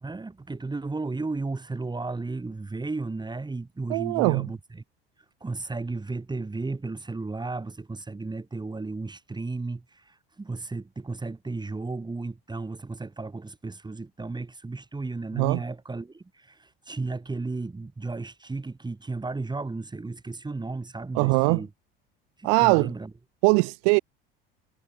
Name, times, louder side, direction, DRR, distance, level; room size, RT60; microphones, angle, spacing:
voice 1, 0.0-4.8 5.4-21.7 22.4-23.1, right 3 dB, 15° right, 3.4 m, -34 dB
voice 2, 3.9-4.5 15.4-15.6 21.1-21.6 22.4-22.9 23.4-24.0, right 40 dB or more, 50° right, 0.5 m, -21 dB
figure-of-eight pair, 65°, 30 cm